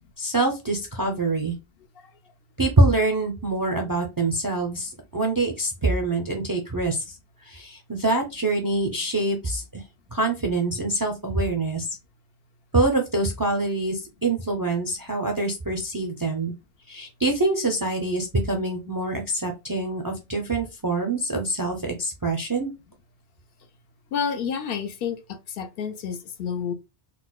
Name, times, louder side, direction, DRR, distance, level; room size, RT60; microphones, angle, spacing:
voice 1, 0.2-1.5 2.6-7.1 7.4-9.8 10.1-11.9 12.7-16.5 16.9-22.7, right 2 dB, 35° right, 0.4 m, -25 dB
voice 2, 24.1-26.7, left 7 dB, 70° left, 0.8 m, -30 dB
4.0 x 2.2 x 2.3 m
omnidirectional pair, 1.0 m